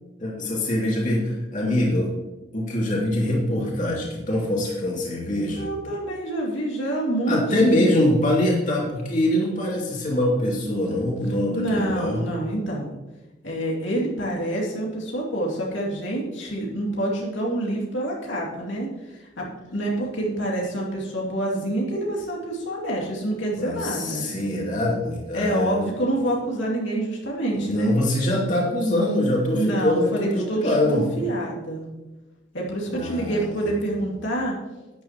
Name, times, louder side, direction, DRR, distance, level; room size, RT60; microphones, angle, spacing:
voice 1, 0.2-2.1 2.5-5.7 7.3-12.2 23.5-25.9 27.5-31.1 32.9-33.5, left 1 dB, 45° left, -3 dB, 2.6 m, -23 dB
voice 2, 5.5-7.8 11.5-12.9 13.4-24.2 25.3-27.9 29.5-31.8 32.5-34.6, right 1 dB, 90° left, -3 dB, 2.5 m, -27 dB
12.0 x 9.8 x 3.0 m, 1.1 s
head